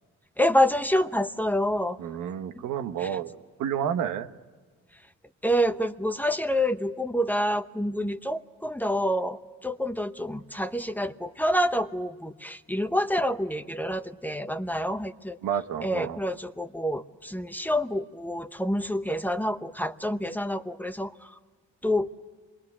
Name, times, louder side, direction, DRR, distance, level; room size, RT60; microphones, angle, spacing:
voice 1, 0.4-2.0 3.0-3.1 5.4-15.4 15.8-21.3 21.8-22.1, equal, 5° left, 10 dB, 0.9 m, -27 dB
voice 2, 2.0-3.3 3.6-4.3 15.4-16.2, right 9 dB, 85° right, 8 dB, 1.2 m, -30 dB
25.5 x 21.5 x 9.8 m, 1.4 s
cardioid pair, 90°, 30 cm